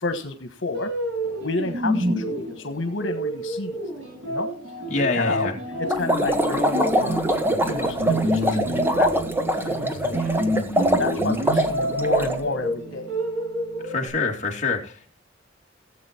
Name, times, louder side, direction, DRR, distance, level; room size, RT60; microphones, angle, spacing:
voice 1, 0.0-0.9 1.4-3.8 4.3-4.5 5.0-5.5 6.0-7.2 7.6-9.3 9.6-10.2 10.4-13.2, left 3 dB, 85° left, 7 dB, 1.4 m, -30 dB
sound 1, 0.7-14.1, right 1 dB, 80° right, 6.6 m, -28 dB
voice 2, 4.9-5.6 13.8-15.1, left 3 dB, 40° left, 0 dB, 2.5 m, -26 dB
sound 2, 5.9-12.4, right 1 dB, 10° right, 1.2 m, -23 dB
16.5 x 7.9 x 4.4 m, 0.39 s
head